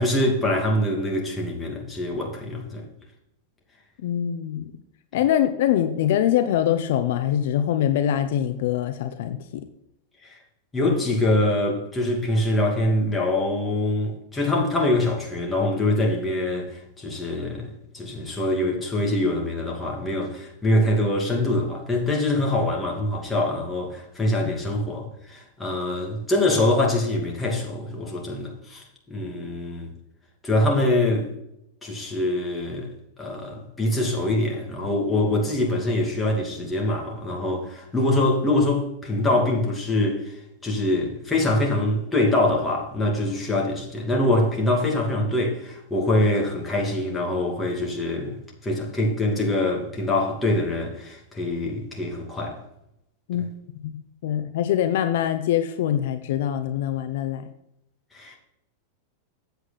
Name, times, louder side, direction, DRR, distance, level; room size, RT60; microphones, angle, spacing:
voice 1, 0.0-2.8 10.2-10.3 10.7-29.9 30.4-31.3 31.8-32.9 33.2-52.6 58.1-58.4, left 1 dB, 15° left, 2.5 m, -24 dB
voice 2, 4.0-4.6 5.1-9.6 24.4-24.5 53.3-53.5 53.8-57.5, left 11 dB, 70° left, 0.8 m, -24 dB
8.2 x 8.0 x 4.1 m
supercardioid pair, 135°, 0 cm